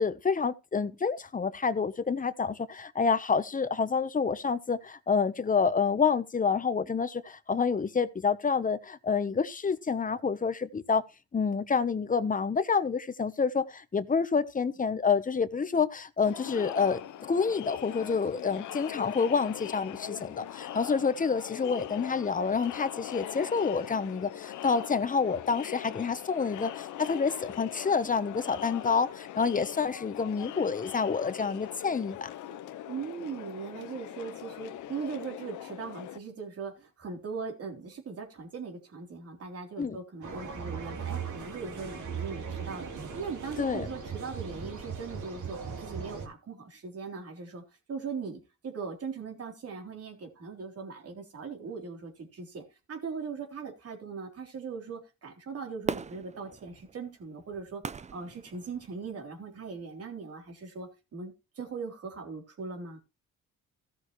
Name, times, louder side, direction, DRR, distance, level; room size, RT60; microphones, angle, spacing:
voice 1, 0.0-11.0 11.3-17.0 17.3-32.3 39.8-40.0 43.6-43.9, left 5 dB, 25° left, 0.9 m, -28 dB
Crowd, 16.2-36.2, left 11 dB, 80° left, 0.9 m, -41 dB
voice 2, 32.9-47.6 47.9-57.8 58.1-63.0, right 5 dB, 50° right, 3.6 m, -40 dB
sound 1, 40.2-46.3, right 6 dB, 75° right, 3.2 m, -38 dB
Fireworks, 55.8-59.2 59.7-59.8, right 5 dB, 25° right, 0.5 m, -39 dB
16.0 x 6.4 x 3.1 m
cardioid pair, 90°, 30 cm